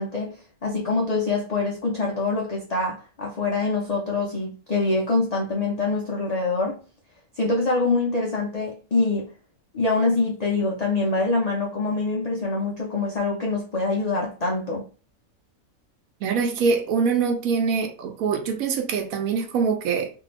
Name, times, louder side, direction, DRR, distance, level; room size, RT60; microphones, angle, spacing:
voice 1, 0.0-6.8 7.4-9.3 9.7-14.9, left 3 dB, 75° left, 0.3 m, -25 dB
voice 2, 16.2-20.1, right 5 dB, 75° right, 1.0 m, -24 dB
2.6 x 2.6 x 3.2 m
omnidirectional pair, 1.5 m